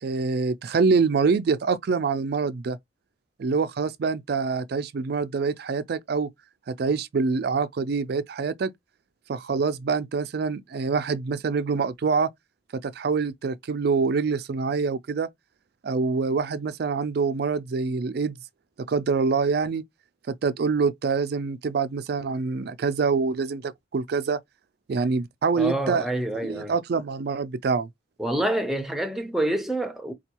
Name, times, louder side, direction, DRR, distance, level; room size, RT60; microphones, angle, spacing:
voice 1, 0.0-2.8 3.4-6.3 6.7-8.7 9.3-12.3 12.7-15.3 15.8-18.3 18.9-19.8 20.3-24.4 24.9-26.1 26.4-27.9, right 4 dB, 50° right, 0.4 m, -25 dB
voice 2, 25.5-26.7 28.2-30.1, right 1 dB, ahead, 0.6 m, -27 dB
4.4 x 2.3 x 2.9 m
head